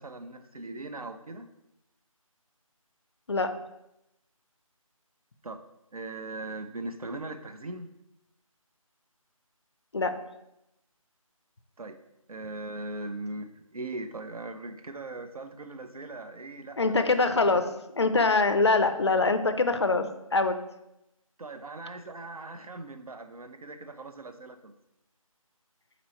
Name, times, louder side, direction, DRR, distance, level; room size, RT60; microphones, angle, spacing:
voice 1, 0.0-1.5 5.4-5.6 5.9-7.9 11.8-12.0 12.3-17.0 21.4-24.7, right 2 dB, 90° right, 8 dB, 0.5 m, -39 dB
voice 2, 16.8-20.1 20.3-20.6, left 3 dB, 50° left, 9 dB, 0.4 m, -24 dB
4.0 x 3.0 x 4.2 m, 0.87 s
figure-of-eight pair, 165°, 18 cm